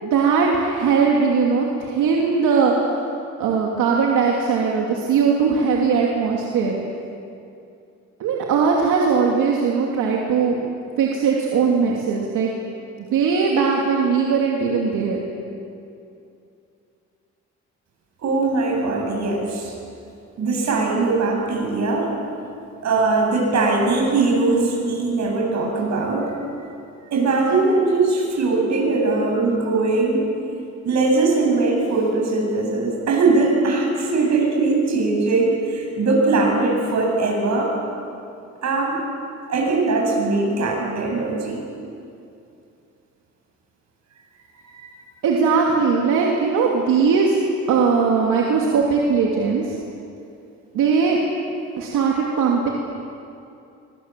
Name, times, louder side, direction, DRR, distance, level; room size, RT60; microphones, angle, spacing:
voice 1, 0.0-3.0 3.4-6.8 8.2-10.6 11.0-12.5 13.1-15.2 45.2-47.4 47.7-49.8 50.7-51.2 51.8-52.7, right 5 dB, 85° right, -1 dB, 2.9 m, -19 dB
voice 2, 18.2-19.7 20.4-22.1 22.8-26.3 27.1-30.3 30.8-37.7 38.6-39.0 39.5-41.6 44.7-44.9, right 3 dB, 65° right, 0 dB, 8.0 m, -20 dB
23.5 x 23.5 x 7.6 m, 2.6 s
cardioid pair, 90°, 30 cm